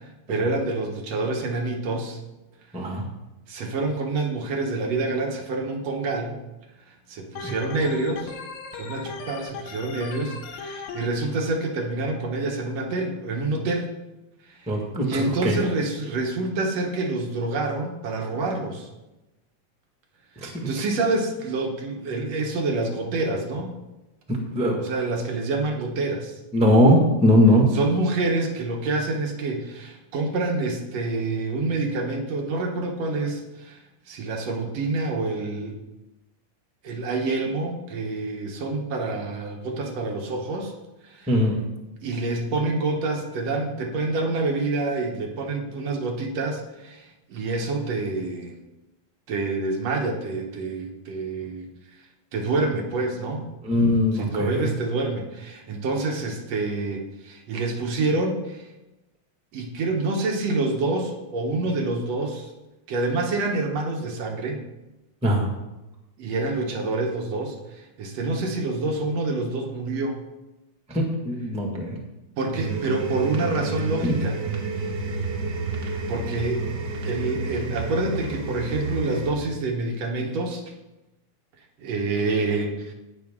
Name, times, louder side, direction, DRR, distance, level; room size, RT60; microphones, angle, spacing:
voice 1, 0.3-2.2 3.5-6.4 6.9-8.3 8.7-13.9 14.5-14.7 15.0-18.9 20.4-23.8 24.7-26.4 27.7-33.8 34.1-35.8 36.8-40.7 41.0-41.4 42.0-48.6 49.3-51.7 52.3-53.5 54.1-58.7 59.5-62.5 62.9-64.6 66.2-70.2 71.7-71.8 72.4-74.4 76.1-76.7 77.0-80.6 81.8-82.9, right 2 dB, 65° right, 1 dB, 2.2 m, -27 dB
Organ, 7.4-11.1, left 5 dB, 80° left, 2.3 m, -37 dB
voice 2, 14.7-15.6 20.4-20.5 20.8-20.9 24.3-24.8 26.5-27.6 41.3-41.5 53.6-54.7 65.2-65.5 70.9-71.9 74.0-74.1, left 1 dB, 5° right, 0 dB, 0.9 m, -20 dB
sound 1, 72.5-79.3, right 3 dB, 50° right, 1.4 m, -30 dB
17.0 x 5.9 x 3.7 m, 1.0 s
omnidirectional pair, 3.3 m